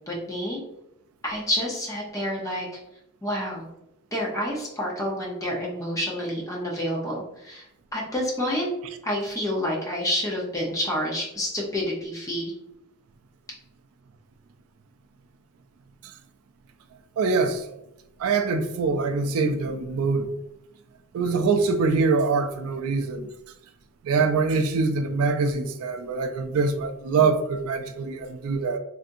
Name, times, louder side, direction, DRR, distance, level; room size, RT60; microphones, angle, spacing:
voice 1, 0.1-0.6 1.2-2.7 3.2-3.7 4.1-7.7 7.9-8.7 9.0-12.5, equal, 15° left, 0.8 m, -28 dB
voice 2, 17.2-17.7 18.2-20.3 21.1-23.3 24.0-28.8, right 4 dB, 75° right, 0.3 m, -24 dB
3.4 x 2.6 x 2.6 m
head